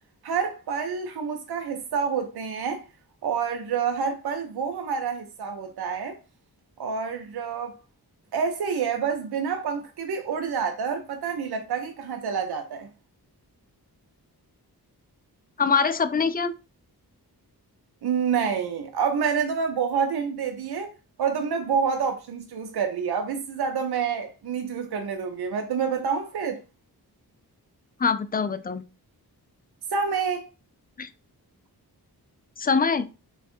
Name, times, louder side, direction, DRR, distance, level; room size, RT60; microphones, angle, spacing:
voice 1, 0.2-2.8 3.2-6.2 6.8-7.7 8.3-12.9 18.0-20.9 21.2-26.6 29.9-30.5, right 6 dB, 70° right, 0.6 m, -28 dB
voice 2, 15.6-16.5 28.0-28.8 31.0-31.1 32.6-33.1, left 5 dB, 25° left, 0.4 m, -23 dB
3.3 x 2.4 x 4.3 m
cardioid pair, 65°, 39 cm